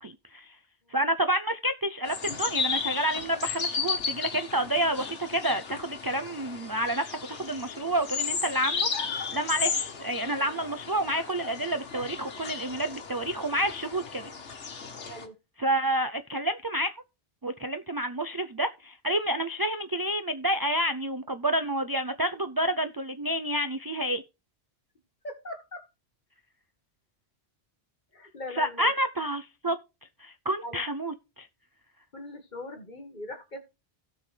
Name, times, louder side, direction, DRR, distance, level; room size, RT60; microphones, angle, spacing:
voice 1, 0.0-0.6 0.9-8.9 9.3-14.3 15.6-16.9 17.4-24.2 28.5-29.8 30.2-31.5, right 1 dB, 35° right, 0.3 m, -29 dB
sound 1, 2.0-15.3, left 5 dB, 85° left, 1.6 m, -34 dB
voice 2, 25.2-25.9 28.1-28.9 30.6-30.8 32.1-33.6, left 1 dB, 40° left, 1.7 m, -40 dB
16.5 x 6.1 x 3.3 m
omnidirectional pair, 1.2 m